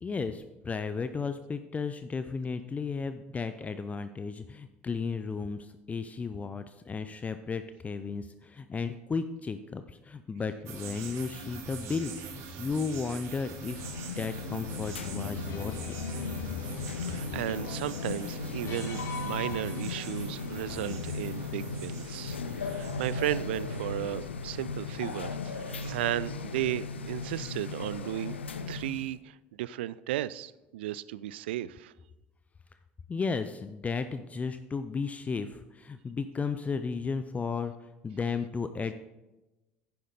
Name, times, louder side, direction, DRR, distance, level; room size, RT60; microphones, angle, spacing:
voice 1, 0.0-16.0 33.1-37.7 38.0-38.9, left 5 dB, 25° left, 10 dB, 0.6 m, -34 dB
sound 1, 10.7-23.9, right 5 dB, 50° right, 1.7 m, -45 dB
sound 2, 13.5-29.1, left 4 dB, 80° left, 0.6 m, -37 dB
sound 3, 14.4-21.2, left 8 dB, 45° left, 0.9 m, -44 dB
voice 2, 17.1-28.4 28.7-31.9, right 13 dB, 70° right, 18 dB, 0.4 m, -35 dB
10.5 x 10.0 x 4.0 m, 1.0 s
figure-of-eight pair, 65°, 6 cm